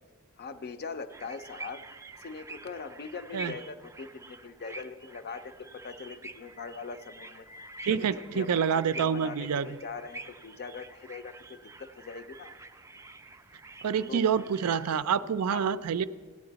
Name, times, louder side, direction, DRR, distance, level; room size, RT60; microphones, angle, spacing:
voice 1, 0.4-1.8 2.2-7.5 7.9-12.6 14.1-14.4 15.5-15.7, left 5 dB, 45° left, 11 dB, 0.5 m, -41 dB
sound 1, 1.1-14.9, right 2 dB, 15° right, 0.4 m, -47 dB
voice 2, 7.8-9.7 13.8-16.1, right 7 dB, 80° right, 14 dB, 0.4 m, -27 dB
15.0 x 9.6 x 4.0 m, 1.5 s
head